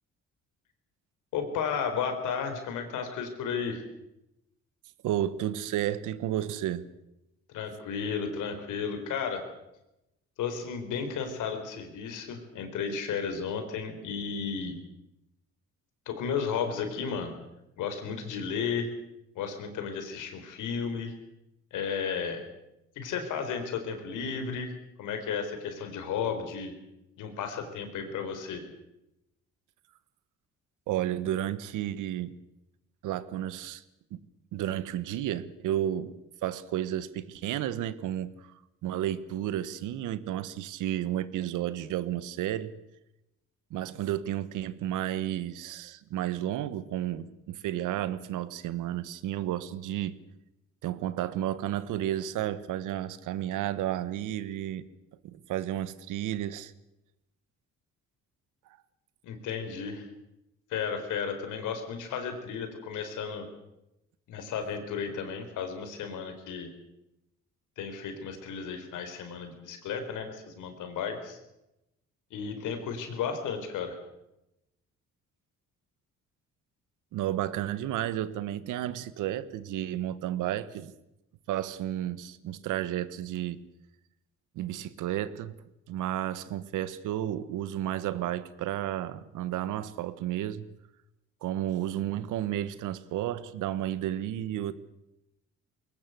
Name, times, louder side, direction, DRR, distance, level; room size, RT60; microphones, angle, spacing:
voice 1, 1.3-3.8 7.5-9.4 10.4-14.8 16.1-17.3 17.8-18.9 19.3-21.1 21.7-22.4 23.0-24.7 25.0-26.7 27.2-28.6 59.2-60.1 60.7-63.4 64.3-66.7 67.8-71.4 72.3-74.0, left 6 dB, 90° left, 4.4 m, -33 dB
voice 2, 5.0-6.9 30.9-32.4 33.0-33.8 34.1-34.2 34.5-36.1 36.4-38.3 38.8-42.7 43.7-50.2 50.8-54.9 55.2-56.7 77.1-80.9 81.5-83.6 84.5-85.5 85.9-90.7 91.4-94.7, right 12 dB, 90° right, 1.3 m, -32 dB
21.5 x 19.0 x 8.2 m
cardioid pair, 90°, 30 cm